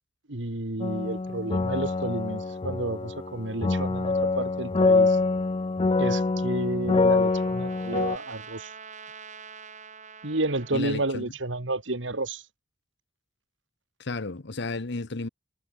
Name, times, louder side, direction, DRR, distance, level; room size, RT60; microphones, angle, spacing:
voice 1, 0.3-5.2 6.0-8.7 10.2-12.4, right 2 dB, 70° right, 2.2 m, -31 dB
sound 1, 0.8-8.2, left 3 dB, 30° left, 0.5 m, -25 dB
Trumpet, 6.2-10.9, right 6 dB, 40° right, 6.8 m, -46 dB
voice 2, 10.7-11.3 14.0-15.3, left 3 dB, 65° left, 1.1 m, -33 dB
head